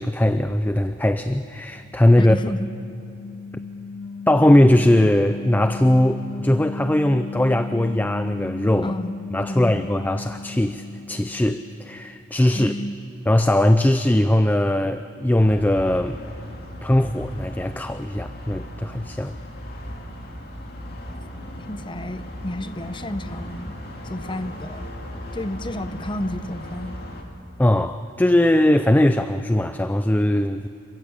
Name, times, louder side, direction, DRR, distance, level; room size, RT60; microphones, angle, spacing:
voice 1, 0.0-2.4 4.3-8.9 9.3-12.7 13.3-16.2 16.8-19.4 27.6-30.7, left 1 dB, 10° left, 10 dB, 0.4 m, -20 dB
sound 1, 1.7-11.8, left 4 dB, 70° left, 7.4 m, -36 dB
voice 2, 2.2-2.7 8.8-9.2 9.5-9.8 12.5-12.9 21.7-23.8 24.0-24.8 25.3-27.0, left 1 dB, 25° left, 12 dB, 0.8 m, -31 dB
sound 2, 15.4-27.2, equal, 55° left, 2.7 m, -37 dB
27.5 x 15.5 x 8.6 m, 2.6 s
head